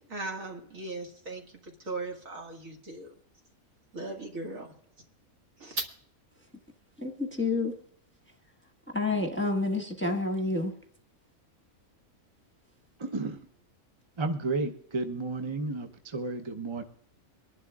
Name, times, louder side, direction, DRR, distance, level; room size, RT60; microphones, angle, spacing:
voice 1, 0.0-3.1 3.9-4.7 5.6-5.9, right 2 dB, 65° right, 2 dB, 2.3 m, -38 dB
voice 2, 7.0-7.7 8.9-10.7, left 3 dB, 10° left, 3 dB, 1.2 m, -29 dB
voice 3, 13.0-13.4 14.2-16.8, right 3 dB, 30° right, 6 dB, 0.5 m, -32 dB
23.5 x 11.5 x 2.4 m, 0.65 s
omnidirectional pair, 1.5 m